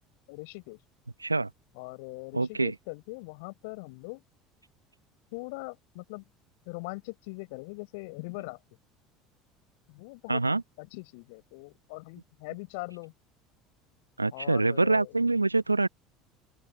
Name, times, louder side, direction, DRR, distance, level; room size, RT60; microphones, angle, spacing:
voice 1, 0.3-0.8 1.8-4.2 5.3-6.2 6.7-8.6 9.9-10.4 10.8-13.1 14.3-15.1, left 29 dB, 60° left, 5.4 m, -41 dB
voice 2, 2.3-2.7 10.3-10.6 14.2-15.9, right 3 dB, 85° right, 1.0 m, -25 dB
open air
figure-of-eight pair, 65°, 0 cm